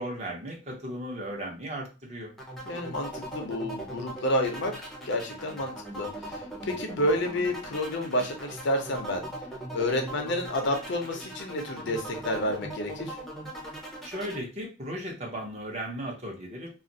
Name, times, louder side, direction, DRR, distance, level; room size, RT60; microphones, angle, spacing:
voice 1, 0.0-2.3 14.0-16.7, right 1 dB, 35° right, -1 dB, 0.8 m, -36 dB
sound 1, 2.4-14.4, right 1 dB, ahead, 0.6 m, -40 dB
voice 2, 2.7-9.2 9.7-13.2, left 1 dB, 60° left, 4 dB, 0.6 m, -30 dB
2.4 x 2.0 x 3.9 m, 0.32 s
head